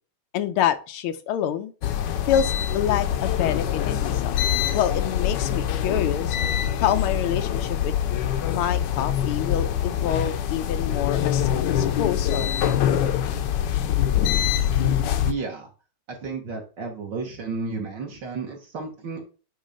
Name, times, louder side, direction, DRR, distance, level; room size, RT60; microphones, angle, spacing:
voice 1, 0.3-1.7 2.3-4.4 4.7-6.4 6.8-8.0 8.5-12.6, left 10 dB, 90° left, 8 dB, 1.6 m, -27 dB
sound 1, 1.8-15.3, left 10 dB, 70° left, 1.2 m, -24 dB
voice 2, 15.3-15.7 16.2-19.2, right 4 dB, 60° right, 1 dB, 1.8 m, -32 dB
8.7 x 3.1 x 5.1 m, 0.35 s
omnidirectional pair, 2.3 m